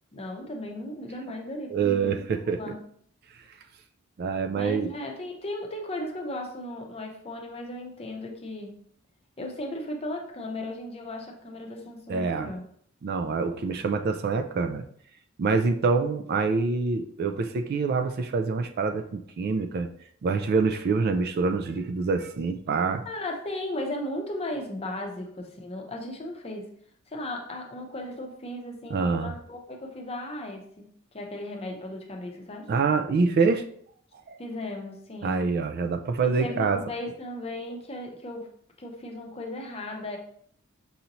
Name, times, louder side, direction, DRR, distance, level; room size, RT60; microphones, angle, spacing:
voice 1, 0.1-2.8 4.5-8.7 9.4-12.6 23.0-26.7 27.1-32.7 34.4-35.5 36.2-38.5 38.8-40.2, left 1 dB, 30° left, 1 dB, 0.7 m, -36 dB
voice 2, 1.7-2.6 4.2-4.9 12.1-12.5 13.0-14.8 15.4-19.9 20.2-23.0 28.9-29.3 32.7-33.6 34.3-34.4 35.2-36.8, right 4 dB, 50° right, 7 dB, 0.3 m, -26 dB
5.5 x 2.7 x 2.9 m, 0.62 s
head